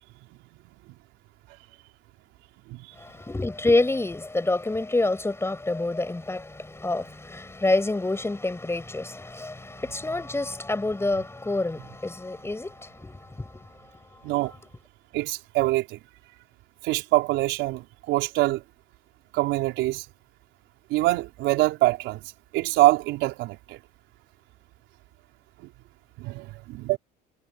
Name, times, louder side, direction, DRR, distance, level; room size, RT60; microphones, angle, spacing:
voice 1, 3.0-13.8 14.1-14.2, left 2 dB, 15° left, 6.6 m, -27 dB
voice 2, 15.1-16.0 16.8-18.6 19.3-20.0 20.9-22.2 22.5-23.8 25.6-25.7 26.2-27.0, right 19 dB, 70° right, 4.3 m, -24 dB
supercardioid pair, 80°, 20 cm